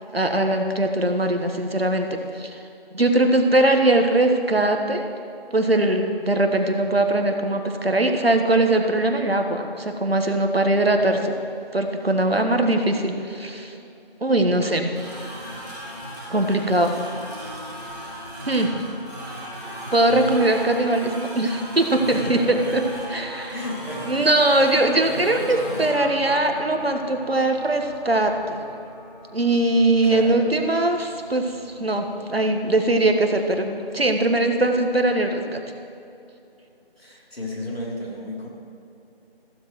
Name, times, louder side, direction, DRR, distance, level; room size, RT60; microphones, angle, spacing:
voice 1, 0.1-2.6 2.9-5.1 5.5-11.3 11.7-13.7 14.2-15.0 16.3-16.9 18.5-18.8 19.9-22.8 23.1-23.5 24.1-28.6 29.3-35.6, right 2 dB, 75° right, 5 dB, 1.3 m, -21 dB
voice 2, 11.0-11.3 20.1-20.2 22.1-22.8 23.5-24.2 30.0-30.4 37.0-38.5, left 1 dB, 75° left, -3 dB, 3.3 m, -33 dB
sound 1, 14.9-32.5, equal, 5° right, 2.9 m, -38 dB
15.0 x 12.5 x 3.1 m, 2.7 s
figure-of-eight pair, 175°, 30 cm